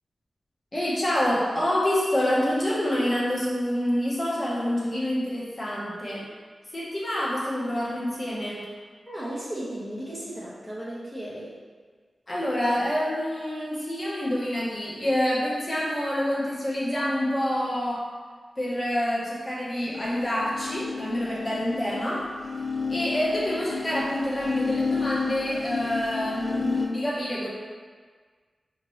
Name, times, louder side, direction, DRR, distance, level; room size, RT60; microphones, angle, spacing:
voice 1, 0.7-6.2 6.7-8.6 12.3-18.0 18.6-22.2 22.9-27.5, equal, 35° left, -6 dB, 1.1 m, -27 dB
voice 2, 9.1-11.5, right 1 dB, 10° left, -8 dB, 0.7 m, -35 dB
sound 1, 19.8-26.9, left 5 dB, 55° left, 0.5 m, -32 dB
5.0 x 2.8 x 3.1 m, 1.5 s
wide cardioid pair, 95°, 0 cm